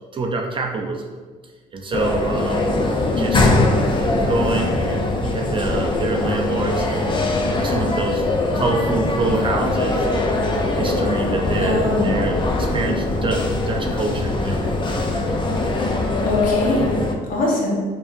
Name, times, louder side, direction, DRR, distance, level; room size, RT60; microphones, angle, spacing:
voice 1, 0.1-1.1 1.7-2.7 3.2-3.5 4.2-7.1 7.5-8.3 8.5-10.3 10.7-14.9, right 3 dB, 30° right, 1 dB, 0.4 m, -26 dB
sound 1, 1.9-17.2, left 2 dB, 30° left, 0.5 m, -21 dB
voice 2, 3.0-3.4 11.6-12.2 16.2-16.9 17.3-17.7, left 2 dB, 55° left, -3 dB, 1.1 m, -22 dB
4.8 x 2.8 x 2.5 m, 1.5 s
cardioid pair, 110°, 17 cm